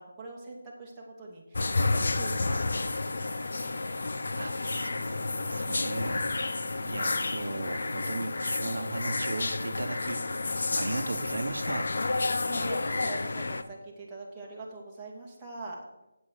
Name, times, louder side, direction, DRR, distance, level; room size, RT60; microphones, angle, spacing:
voice 1, 0.0-3.9 12.5-15.8, right 3 dB, 10° right, -6 dB, 2.5 m, -44 dB
sound 1, 1.5-13.6, left 3 dB, 65° left, 0.8 m, -30 dB
voice 2, 4.3-6.2 6.6-10.3 10.7-11.9, right 2 dB, 70° right, 7 dB, 1.0 m, -36 dB
8.5 x 8.1 x 6.5 m, 0.95 s
figure-of-eight pair, 160°, 0 cm